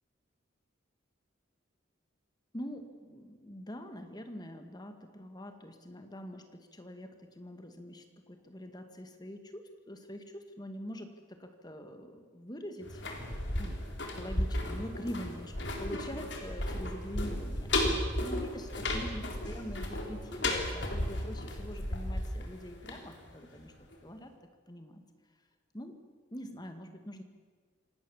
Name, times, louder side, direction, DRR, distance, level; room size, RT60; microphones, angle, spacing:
voice 1, 2.5-13.8 14.1-23.7 24.0-24.3 24.7-25.0 25.7-26.0 26.3-27.2, equal, 20° left, 7 dB, 2.1 m, -44 dB
sound 1, 12.8-23.6 23.9-24.0, left 1 dB, 65° left, 3.9 m, -34 dB
26.5 x 18.5 x 7.3 m, 1.5 s
head